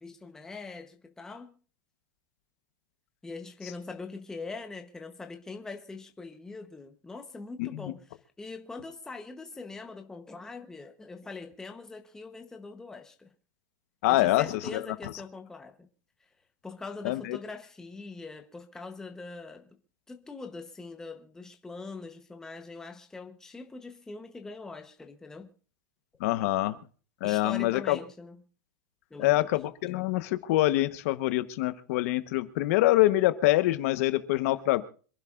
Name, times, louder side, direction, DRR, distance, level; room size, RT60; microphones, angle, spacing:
voice 1, 0.0-1.5 3.2-13.3 14.1-15.9 16.6-19.8 20.1-25.5 27.2-28.4 29.1-29.5, left 3 dB, 5° left, 1.0 m, -42 dB
voice 2, 14.0-14.8 17.0-17.4 26.2-26.8 27.2-28.0 29.2-34.8, left 17 dB, 50° left, 1.1 m, -25 dB
26.5 x 11.5 x 2.5 m
supercardioid pair, 170°, 10 cm